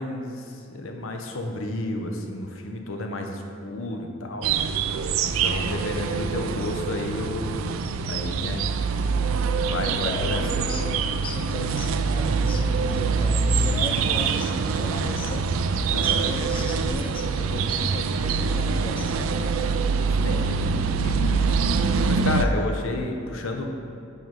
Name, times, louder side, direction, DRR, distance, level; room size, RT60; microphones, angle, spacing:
voice 1, 0.0-4.5 4.8-7.6 8.1-8.6 9.6-10.7 15.9-16.2 20.2-20.6 21.0-21.3 21.6-23.9, left 2 dB, 85° left, 3 dB, 0.8 m, -32 dB
sound 1, 4.4-22.4, right 4 dB, 90° right, 0.4 m, -24 dB
voice 2, 5.3-5.6 9.8-15.5 15.9-19.3 20.3-20.6 22.2-22.9, left 3 dB, 25° left, 3 dB, 0.4 m, -38 dB
9.2 x 4.0 x 4.7 m, 2.4 s
head